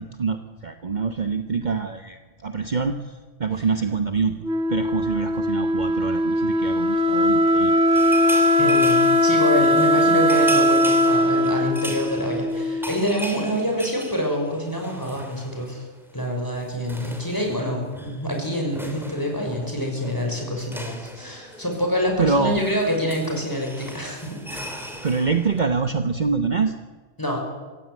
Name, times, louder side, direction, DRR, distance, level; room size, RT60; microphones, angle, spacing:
voice 1, 0.0-3.0 3.4-4.3 4.7-7.7 22.2-22.6 25.0-26.7, right 5 dB, 40° right, 7 dB, 1.2 m, -25 dB
Wind instrument woodwind instrument, 4.4-13.2, left 1 dB, 70° right, 1.6 m, -20 dB
sound 1, 7.9-15.8 16.1-16.3 16.5-25.6, equal, ahead, 3.2 m, -38 dB
voice 2, 8.6-15.8 16.1-24.8 27.2-27.4, equal, 15° left, 1 dB, 6.1 m, -26 dB
24.0 x 16.0 x 9.4 m, 1.4 s
omnidirectional pair, 1.2 m